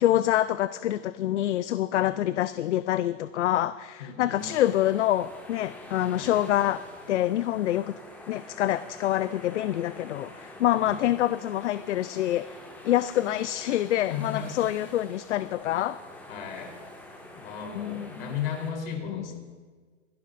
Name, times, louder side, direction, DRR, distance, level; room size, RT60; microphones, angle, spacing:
voice 1, 0.0-8.0 8.3-12.6 12.8-16.0 17.7-18.1 19.1-19.4, left 13 dB, 70° left, 14 dB, 0.5 m, -26 dB
voice 2, 4.0-4.5 6.2-6.4 10.8-11.0 14.1-14.5 16.3-16.7 17.3-19.4, left 7 dB, 50° left, 0 dB, 3.8 m, -35 dB
sound 1, 4.4-18.7, left 1 dB, 5° left, 1.7 m, -46 dB
25.0 x 12.0 x 2.6 m, 1.5 s
hypercardioid pair, 170°, 37 cm